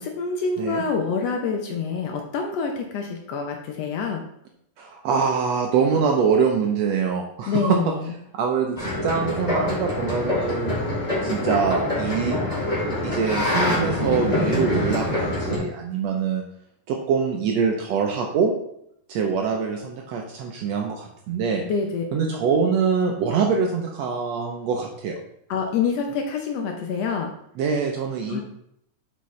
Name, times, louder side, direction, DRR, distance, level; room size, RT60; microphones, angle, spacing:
voice 1, 0.0-4.2 7.5-8.1 21.7-22.4 25.5-27.3 28.3-28.4, left 5 dB, 75° left, 3 dB, 1.6 m, -26 dB
voice 2, 4.8-7.8 8.3-10.7 11.2-12.4 13.0-16.4 16.9-18.5 19.1-21.6 22.1-25.2 27.6-28.4, right 6 dB, 75° right, 2 dB, 1.6 m, -24 dB
sound 1, 8.8-15.6, left 1 dB, 15° left, 2.2 m, -25 dB
7.8 x 5.7 x 3.2 m, 0.73 s
omnidirectional pair, 3.5 m